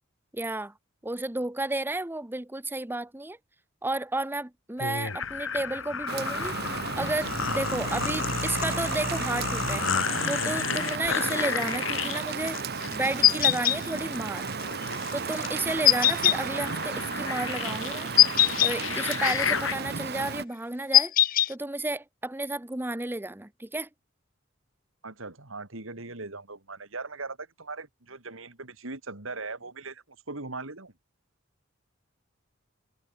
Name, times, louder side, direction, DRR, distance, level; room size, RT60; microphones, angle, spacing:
voice 1, 0.3-0.7 1.0-3.4 3.8-6.6 7.0-9.9 10.3-12.6 12.9-14.5 15.1-18.1 18.6-21.1 21.5-23.9, right 2 dB, 10° right, 0.9 m, -32 dB
sound 1, 4.8-19.8, left 6 dB, 75° left, 2.2 m, -32 dB
Rain, 6.1-20.4, right 5 dB, 55° right, 1.2 m, -34 dB
sound 2, 13.2-13.8 15.8-16.4 18.2-18.7 20.9-21.5, left 13 dB, 45° left, 0.5 m, -19 dB
voice 2, 25.0-30.9, right 3 dB, 85° right, 3.3 m, -39 dB
head